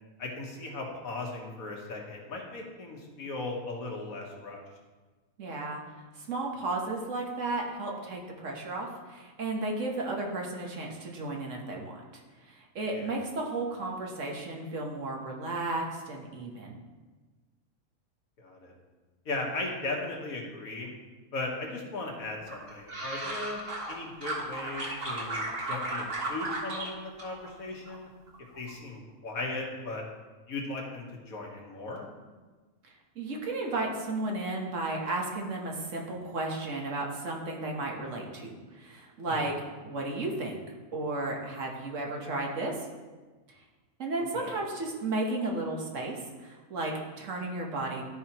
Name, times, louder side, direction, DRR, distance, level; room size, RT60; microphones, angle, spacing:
voice 1, 0.2-4.6 12.9-13.2 18.4-18.7 19.3-20.9 21.3-23.6 23.9-28.1 28.6-30.0 30.5-32.1 39.3-39.5 44.3-44.5, left 2 dB, 80° left, -1 dB, 1.7 m, -37 dB
voice 2, 5.4-5.8 6.2-12.0 12.5-16.8 32.8-39.5 39.8-40.6 40.9-42.7 44.0-48.1, right 2 dB, 65° right, 0 dB, 1.4 m, -34 dB
sound 1, 22.5-23.9 24.2-26.9 27.2-28.0 28.3-28.7, right 2 dB, 45° right, 1.5 m, -35 dB
12.5 x 4.8 x 2.9 m, 1.3 s
omnidirectional pair, 1.5 m